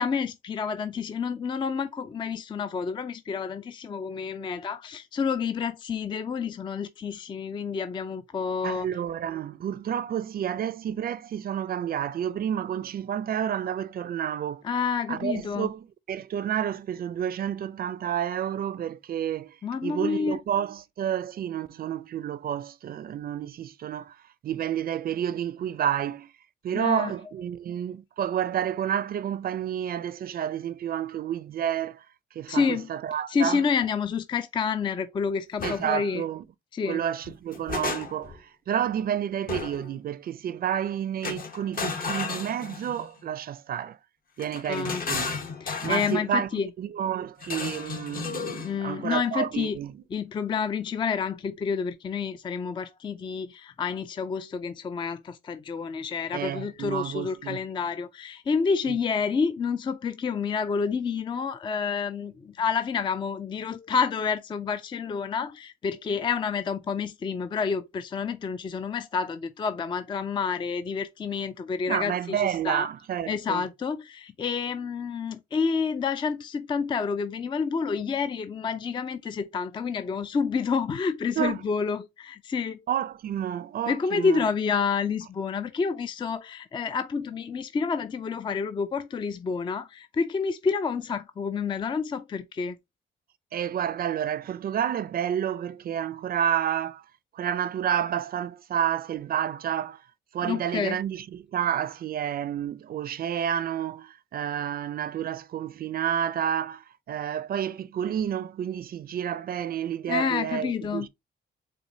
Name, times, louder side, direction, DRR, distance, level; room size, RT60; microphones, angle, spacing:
voice 1, 0.0-8.9 14.6-15.7 19.6-20.4 26.7-27.1 32.5-32.9 33.3-36.2 36.7-37.0 44.7-45.0 45.6-46.7 48.6-49.8 50.1-72.9 73.3-82.8 83.9-92.8 100.4-101.0 110.1-111.1, left 5 dB, 25° left, 0.3 m, -29 dB
voice 2, 8.6-14.6 15.1-19.6 19.8-24.2 24.4-26.3 26.6-32.0 32.3-33.6 35.6-36.5 36.9-44.0 44.4-45.4 45.8-46.5 46.8-49.9 56.3-57.6 58.9-59.0 71.9-73.6 81.4-81.6 82.9-84.4 93.5-97.0 97.3-100.0 100.3-111.1, right 9 dB, 50° right, 0.4 m, -30 dB
sound 1, 35.6-35.8 37.2-38.4 39.5-39.9 41.2-43.1 44.4-46.2 47.4-48.7, left 5 dB, 45° left, 1.0 m, -33 dB
4.4 x 2.6 x 2.6 m
cardioid pair, 90°, 20 cm